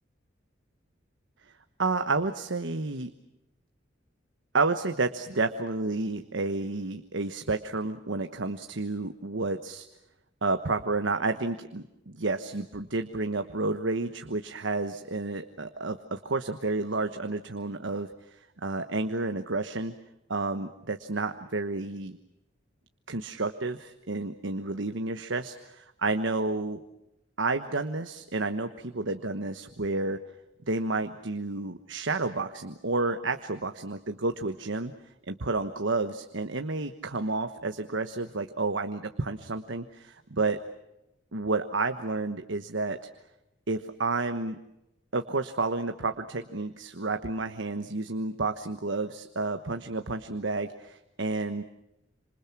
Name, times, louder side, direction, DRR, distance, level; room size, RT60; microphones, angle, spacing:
voice 1, 1.8-3.1 4.5-9.9 10.4-19.9 20.3-22.2 23.1-26.8 27.4-30.2 30.7-34.9 35.3-40.6 41.3-43.0 43.7-44.6 45.1-51.6, right 3 dB, 75° right, 7 dB, 1.2 m, -30 dB
28.0 x 27.0 x 6.0 m, 0.88 s
head